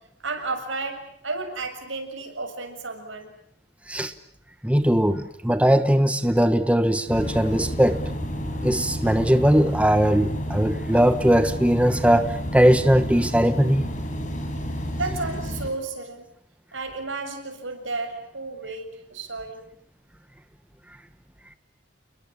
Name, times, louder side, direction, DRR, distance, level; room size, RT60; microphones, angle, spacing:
voice 1, 0.2-3.3 14.9-16.3 16.7-19.6, right 3 dB, 90° right, 6.9 m, -32 dB
voice 2, 4.6-8.0 8.6-13.8, equal, 5° right, 1.1 m, -20 dB
sound 1, 7.1-15.7, equal, 40° left, 5.6 m, -31 dB
30.0 x 22.0 x 8.5 m
head